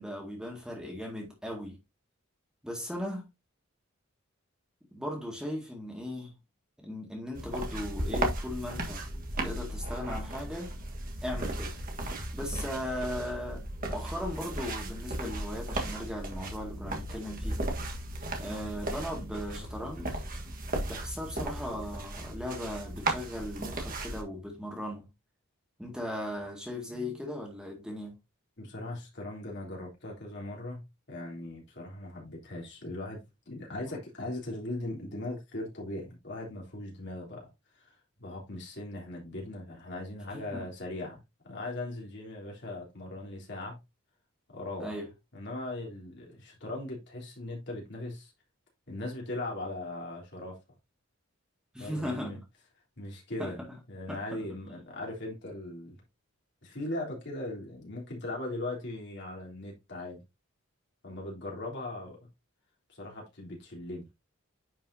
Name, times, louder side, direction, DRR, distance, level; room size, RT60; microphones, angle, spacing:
voice 1, 0.0-1.8 2.6-3.2 4.9-6.3 6.8-9.0 9.4-10.7 11.2-11.8 12.3-17.6 18.4-20.2 20.9-25.1 25.8-28.1 40.3-40.7 44.8-45.1 51.7-52.3 53.4-53.6 54.1-54.7, left 1 dB, 5° right, 2.0 m, -38 dB
sound 1, 7.3-24.2, right 1 dB, 40° right, 1.5 m, -36 dB
voice 2, 28.6-37.5 38.2-43.8 44.5-45.0 45.3-48.3 48.9-50.5 51.8-52.4 53.0-53.6 53.9-56.0 56.6-60.2 61.0-62.2 62.9-64.0, left 2 dB, 55° left, 3.6 m, -39 dB
10.0 x 5.4 x 2.7 m
head